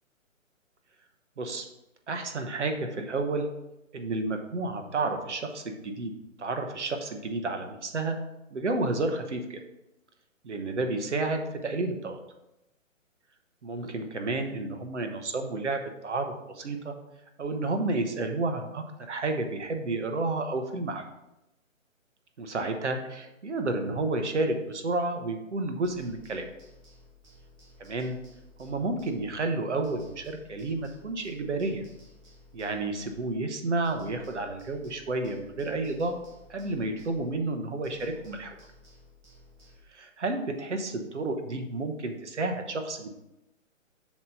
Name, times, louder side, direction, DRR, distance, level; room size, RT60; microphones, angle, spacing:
voice 1, 2.1-3.5 3.9-6.1 6.4-8.2 8.5-9.6 10.4-12.2 13.6-16.9 17.4-21.0 22.4-26.4 27.8-28.2 28.6-31.8 32.5-36.2 36.5-38.6 39.9-43.1, right 2 dB, 60° right, 5 dB, 1.1 m, -31 dB
sound 1, 25.8-29.6 29.8-33.6 33.8-37.6 37.8-39.8, left 1 dB, 25° right, 1.2 m, -56 dB
7.0 x 3.2 x 5.3 m, 0.91 s
figure-of-eight pair, 140°, 40 cm